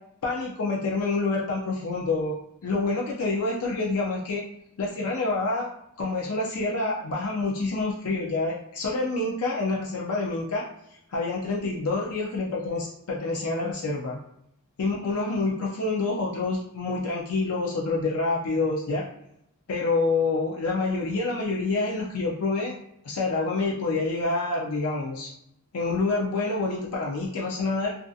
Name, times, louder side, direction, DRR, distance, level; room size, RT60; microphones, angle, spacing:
voice 1, 0.2-2.4 2.6-4.4 4.8-5.7 6.0-10.6 11.1-14.2 14.8-19.0 19.7-22.7 23.0-25.3 25.7-28.0, left 3 dB, 85° left, -3 dB, 0.4 m, -27 dB
2.4 x 2.3 x 2.6 m, 0.79 s
head